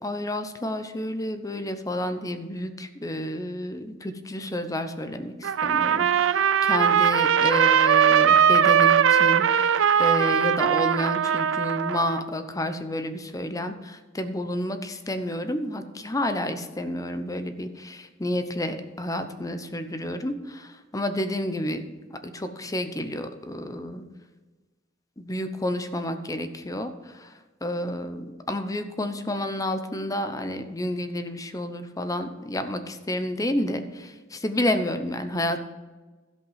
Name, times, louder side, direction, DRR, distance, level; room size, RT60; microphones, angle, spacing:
voice 1, 0.0-24.1 25.2-27.3 27.6-35.6, left 1 dB, 20° left, 9 dB, 0.8 m, -30 dB
Trumpet, 5.4-12.2, right 8 dB, 90° right, 0.4 m, -20 dB
16.0 x 5.4 x 5.6 m, 1.3 s
head